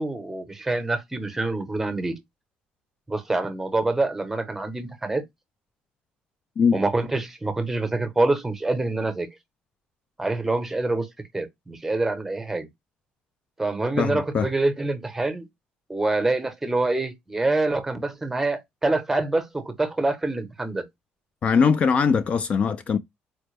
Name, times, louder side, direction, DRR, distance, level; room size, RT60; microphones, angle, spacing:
voice 1, 0.0-2.2 3.1-5.2 6.7-9.3 10.2-11.1 11.3-12.7 13.6-15.5 15.9-20.9, right 2 dB, 10° right, 0.8 m, -26 dB
voice 2, 14.0-14.5 21.4-23.0, left 6 dB, 35° left, 0.3 m, -21 dB
4.2 x 2.1 x 3.2 m
cardioid pair, 135°, 3 cm